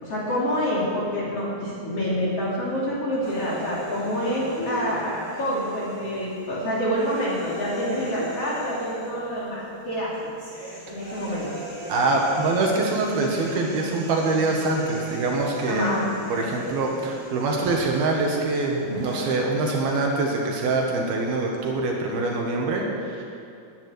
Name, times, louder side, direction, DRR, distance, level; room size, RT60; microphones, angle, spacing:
voice 1, 0.0-10.1 10.9-11.5 15.7-16.0 18.8-19.2, equal, 40° left, -7 dB, 3.5 m, -27 dB
sound 1, 3.2-19.2, equal, 10° right, 4.0 m, -39 dB
voice 2, 11.9-15.9 16.3-23.2, right 3 dB, 70° right, -1 dB, 3.3 m, -24 dB
10.5 x 9.4 x 9.5 m, 2.5 s
omnidirectional pair, 4.6 m